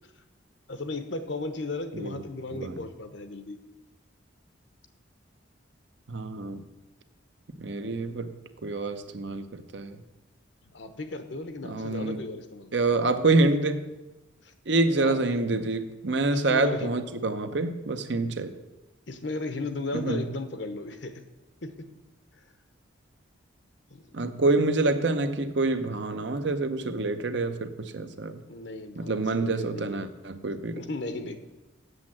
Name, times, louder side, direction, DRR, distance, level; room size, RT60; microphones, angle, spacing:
voice 1, 0.7-3.6 10.7-12.7 14.4-14.5 15.0-15.4 16.3-16.9 19.1-21.2 21.6-21.9 23.9-24.1 28.5-30.1 30.7-31.5, left 2 dB, 65° left, 9 dB, 0.9 m, -35 dB
voice 2, 6.1-6.6 7.6-8.4 8.6-10.0 11.6-12.2 12.7-13.9 14.7-18.5 19.9-20.2 24.1-28.4 29.0-30.7, right 2 dB, 65° right, 9 dB, 0.8 m, -27 dB
8.2 x 7.4 x 7.4 m, 1.1 s
head